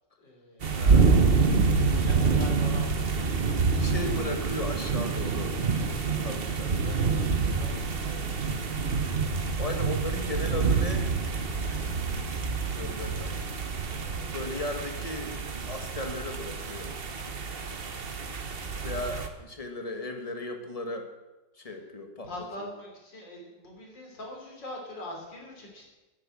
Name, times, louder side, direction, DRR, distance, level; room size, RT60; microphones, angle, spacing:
voice 1, 0.2-0.9 1.9-3.2 6.1-6.3 6.6-9.0 13.9-14.6 21.6-21.8 22.2-25.9, left 1 dB, 75° left, 0 dB, 4.0 m, -44 dB
sound 1, 0.6-19.3, right 4 dB, 40° right, 1.0 m, -27 dB
voice 2, 0.7-1.1 3.7-5.6 6.0-7.0 8.6-8.9 9.6-11.1 12.7-13.3 14.3-16.9 18.8-21.1 21.6-22.3 22.6-22.7, left 2 dB, 20° left, 5 dB, 1.4 m, -36 dB
sound 2, 9.6-15.0, right 5 dB, 60° right, 5.1 m, -41 dB
11.0 x 9.9 x 7.5 m, 1.1 s
omnidirectional pair, 2.0 m